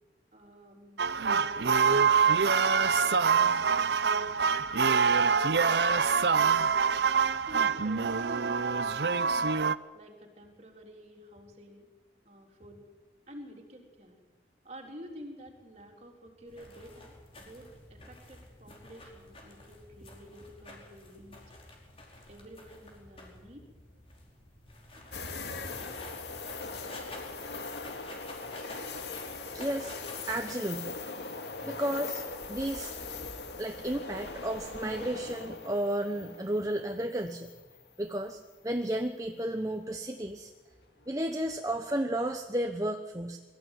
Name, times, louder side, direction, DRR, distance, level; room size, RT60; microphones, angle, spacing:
voice 1, 0.3-4.7 5.3-6.9 7.4-9.1 9.9-11.9 12.2-12.8 13.3-14.2 14.6-21.4 22.3-23.7, equal, 40° right, 1 dB, 3.9 m, -50 dB
sound 1, 1.0-9.8, right 6 dB, 75° right, 0.7 m, -25 dB
sound 2, 16.5-30.6, left 2 dB, 30° left, 4.6 m, -50 dB
sound 3, 25.1-38.1 38.5-38.6 41.1-41.5, left 4 dB, 75° left, 2.3 m, -41 dB
voice 2, 29.5-29.9 30.3-31.0 31.6-32.2 32.5-32.9 33.6-37.5 38.0-38.4 38.6-40.5 41.1-43.4, right 1 dB, 20° right, 5 dB, 1.0 m, -32 dB
23.0 x 15.0 x 9.2 m, 1.3 s
head